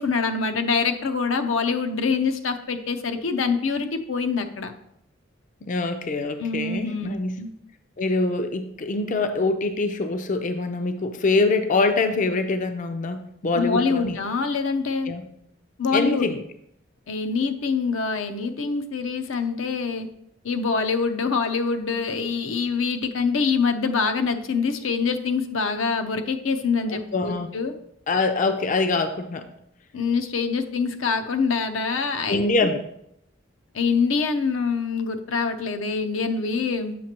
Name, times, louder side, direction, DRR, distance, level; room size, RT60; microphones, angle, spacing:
voice 1, 0.0-4.7 6.4-7.5 13.5-15.1 15.8-16.3 17.1-20.1 20.4-27.7 29.9-32.4 33.7-37.0, left 5 dB, 85° left, 7 dB, 0.6 m, -25 dB
voice 2, 5.6-7.3 8.0-14.2 15.1-15.2 15.9-16.4 26.9-27.5 28.1-29.5 32.3-32.8, left 3 dB, 40° left, 7 dB, 0.4 m, -24 dB
7.5 x 5.9 x 2.9 m, 0.75 s
head